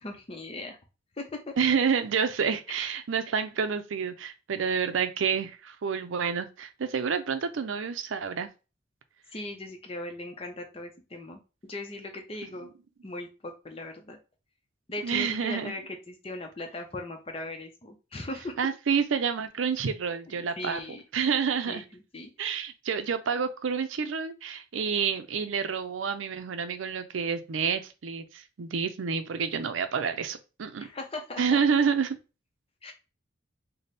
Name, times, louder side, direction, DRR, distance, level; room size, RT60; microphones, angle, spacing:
voice 1, 0.0-0.8 1.2-1.5 2.8-2.9 9.3-12.7 13.0-14.2 14.9-18.6 20.3-21.0 21.7-22.3 30.8-31.6 32.8-32.9, left 2 dB, 30° left, 4 dB, 0.6 m, -39 dB
voice 2, 1.6-8.5 15.0-15.7 18.6-20.8 21.1-21.8 22.4-30.9 31.4-32.2, right 6 dB, 85° right, 9 dB, 0.5 m, -28 dB
3.4 x 2.1 x 4.1 m, 0.30 s
head